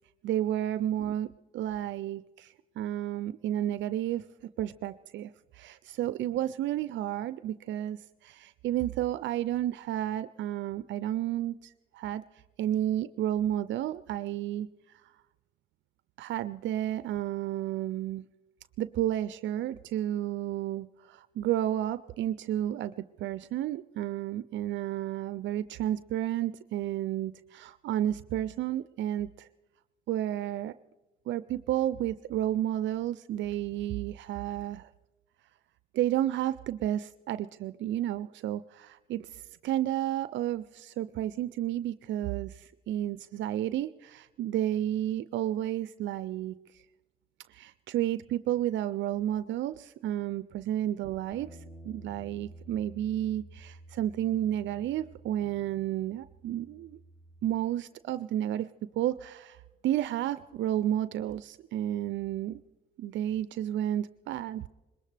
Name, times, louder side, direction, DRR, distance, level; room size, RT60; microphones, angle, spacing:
voice 1, 0.2-1.3 1.5-4.2 4.6-12.2 12.6-15.1 16.2-18.2 18.8-29.5 30.1-30.7 31.3-34.9 35.9-46.8 47.5-57.0 57.4-58.7 59.0-62.6 63.0-64.7, right 12 dB, 80° right, 13 dB, 0.4 m, -32 dB
Bass guitar, 51.3-57.6, right 1 dB, 10° left, 6.3 m, -51 dB
21.5 x 19.5 x 3.3 m, 1.2 s
cardioid pair, 85°, 19 cm